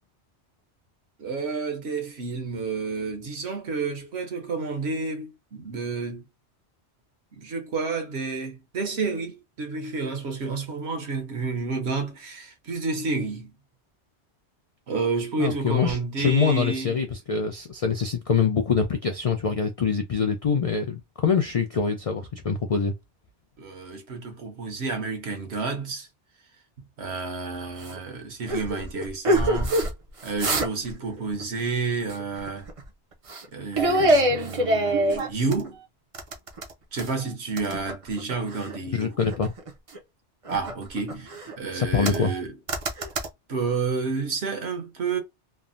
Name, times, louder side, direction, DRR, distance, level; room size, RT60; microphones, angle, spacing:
voice 1, 1.2-6.2 7.3-13.5 14.9-17.0 23.6-26.1 27.0-29.8 30.2-32.7 33.5-35.8 36.9-39.2 40.5-42.6 43.5-45.2, right 4 dB, 70° right, 1.1 m, -30 dB
voice 2, 15.4-22.9 38.9-39.5 41.7-42.3, left 5 dB, 70° left, 0.3 m, -24 dB
sound 1, 27.8-28.0 28.5-29.9 30.2-30.9 31.2-31.4 32.1-32.8 33.3-33.5 33.7-35.7 36.1-37.2 37.6-38.8 39.2-40.0 40.4-41.5 42.0-42.4 42.7-43.3, right 1 dB, 40° right, 0.5 m, -25 dB
3.3 x 2.0 x 2.5 m
omnidirectional pair, 1.2 m